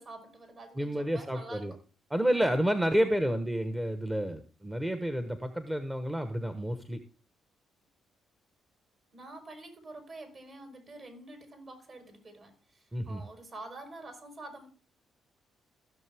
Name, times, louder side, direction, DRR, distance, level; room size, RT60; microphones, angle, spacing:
voice 1, 0.0-1.7 3.0-3.3 9.1-14.7, right 2 dB, 45° right, 5 dB, 4.5 m, -47 dB
voice 2, 0.8-1.7 2.1-7.0 12.9-13.2, equal, 10° right, 9 dB, 1.1 m, -30 dB
15.5 x 6.7 x 3.4 m, 0.39 s
cardioid pair, 90°, 0 cm